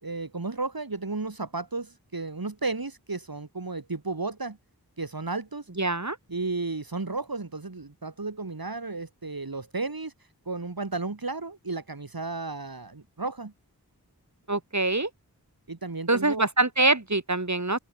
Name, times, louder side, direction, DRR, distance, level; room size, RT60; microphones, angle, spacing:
voice 1, 0.0-4.6 5.0-5.7 6.3-10.1 10.4-13.5 15.7-16.4, right 3 dB, 65° right, 4.9 m, -33 dB
voice 2, 5.8-6.2 14.5-15.1 16.1-17.8, right 2 dB, 45° right, 6.6 m, -24 dB
wide cardioid pair, 50°, 38 cm